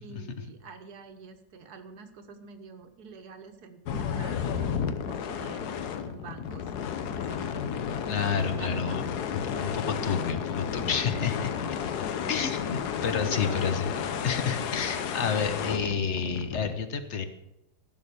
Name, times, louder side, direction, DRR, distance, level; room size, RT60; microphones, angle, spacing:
voice 1, 0.0-7.6 8.5-9.0 13.4-14.0, right 5 dB, 65° right, 8 dB, 1.6 m, -47 dB
sound 1, 3.9-16.7, left 7 dB, 70° left, 1.3 m, -32 dB
voice 2, 8.1-9.0 9.3-11.5 12.3-17.3, left 6 dB, 50° left, 9 dB, 1.1 m, -30 dB
14.5 x 6.4 x 6.9 m, 0.90 s
omnidirectional pair, 1.8 m